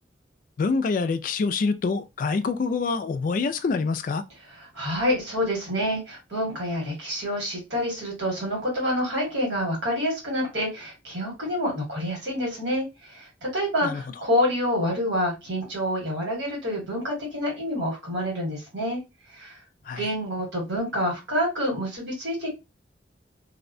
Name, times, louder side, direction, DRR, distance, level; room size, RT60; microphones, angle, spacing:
voice 1, 0.6-4.2 13.8-14.0 19.9-20.0, left 4 dB, 50° left, 0.3 m, -26 dB
voice 2, 4.6-12.8 13.1-19.0 19.3-19.6 20.0-22.5, equal, 85° right, 1.6 m, -27 dB
2.7 x 2.1 x 2.5 m
head